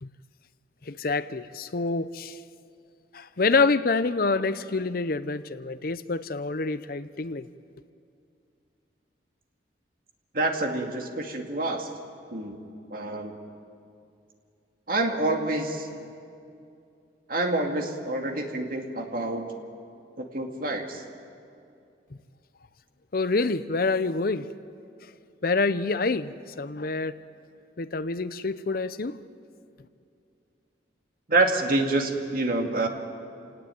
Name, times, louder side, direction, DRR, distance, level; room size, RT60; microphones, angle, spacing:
voice 1, 0.8-2.4 3.1-7.5 23.1-24.5 25.0-25.1 25.4-27.2 27.8-29.2, left 3 dB, 55° left, 14 dB, 0.7 m, -27 dB
voice 2, 10.3-11.9 12.3-12.6 12.9-13.3 14.9-15.9 17.3-19.5 20.2-21.0 31.3-32.9, right 2 dB, 55° right, 3 dB, 2.3 m, -27 dB
28.0 x 18.5 x 9.3 m, 2.5 s
head